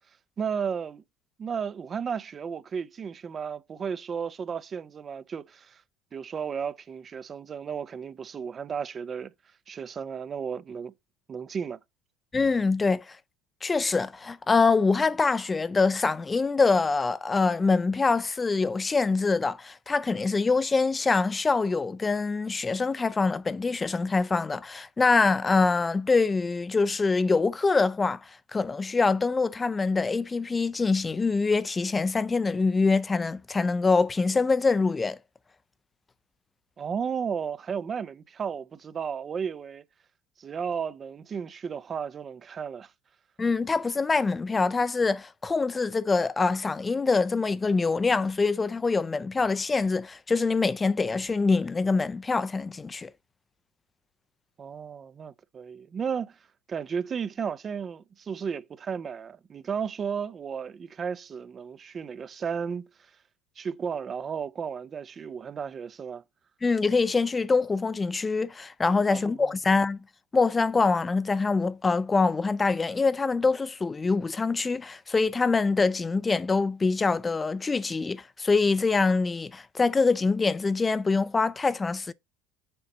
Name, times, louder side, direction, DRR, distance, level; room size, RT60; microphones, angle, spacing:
voice 1, 0.4-1.0 1.4-5.8 6.1-9.3 9.7-10.9 11.3-11.8 36.8-39.8 40.4-42.9 54.6-56.4 56.7-63.1 63.6-66.2 69.1-69.5, right 6 dB, 35° right, 0.5 m, -34 dB
voice 2, 12.3-13.2 13.6-35.2 43.4-53.1 66.6-70.0 70.3-82.1, left 4 dB, 20° left, 0.4 m, -24 dB
6.8 x 5.3 x 3.9 m
hypercardioid pair, 85°, 0 cm